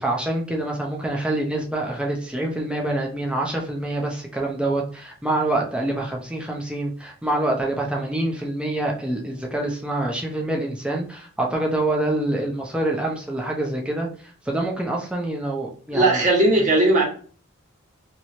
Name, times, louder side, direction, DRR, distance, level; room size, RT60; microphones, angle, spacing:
voice 1, 0.0-16.3, right 1 dB, 5° right, 0.6 m, -26 dB
voice 2, 15.9-17.0, right 2 dB, 35° right, 1.3 m, -17 dB
3.0 x 3.0 x 2.7 m
head